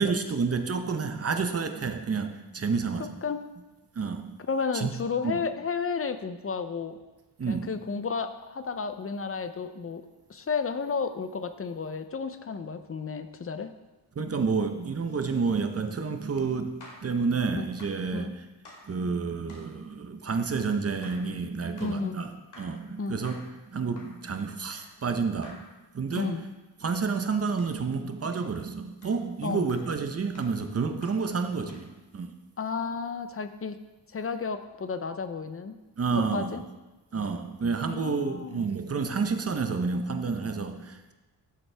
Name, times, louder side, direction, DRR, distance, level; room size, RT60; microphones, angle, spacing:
voice 1, 0.0-3.1 3.9-4.3 4.7-4.9 5.2-5.4 7.4-7.7 14.2-16.8 17.0-18.3 18.8-23.4 23.7-25.6 25.9-26.4 26.8-31.9 32.1-32.3 36.0-36.6 37.1-41.1, right 5 dB, 35° right, 7 dB, 0.8 m, -29 dB
voice 2, 4.5-7.0 7.5-10.0 10.3-13.7 17.5-17.7 18.1-18.3 21.8-22.2 23.0-23.2 26.1-26.4 29.4-29.7 32.6-33.8 34.1-35.8 36.3-36.6 37.8-38.6, left 5 dB, 35° left, 10 dB, 0.5 m, -32 dB
sound 1, 15.0-17.1 17.8-18.1 18.6-18.9 19.5-19.7 20.3-20.5 21.0-21.3 21.8-22.0 22.5-22.8 23.2-23.6 23.9-24.2 24.7-25.0 25.4-25.7 26.1-26.4 26.8-27.0 27.6-27.8 28.3-28.5 29.0-29.2 29.7-29.9 30.3-30.6 31.0-31.3 31.7-31.9, left 2 dB, 70° left, 2.3 m, -52 dB
12.5 x 7.1 x 3.4 m, 1.1 s
wide cardioid pair, 140°, 42 cm